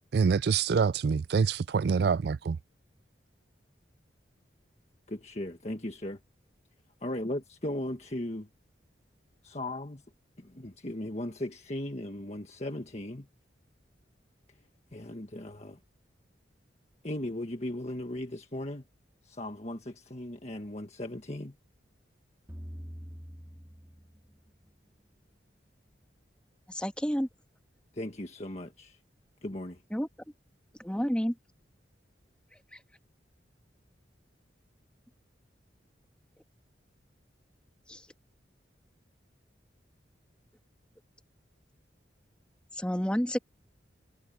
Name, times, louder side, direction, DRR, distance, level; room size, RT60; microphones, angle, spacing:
voice 1, 0.1-2.6, right 5 dB, 60° right, 0.4 m, -26 dB
voice 2, 5.1-6.2 7.0-8.5 9.4-10.0 10.4-13.3 14.9-15.8 17.0-18.8 19.2-21.5 27.9-29.0 29.4-29.8, left 1 dB, 35° left, 1.6 m, -37 dB
sound 1, 22.5-24.7, equal, 15° right, 2.0 m, -45 dB
voice 3, 26.7-27.3 29.9-30.1 30.8-31.3 37.9-38.0 42.8-43.4, equal, 5° left, 1.6 m, -29 dB
head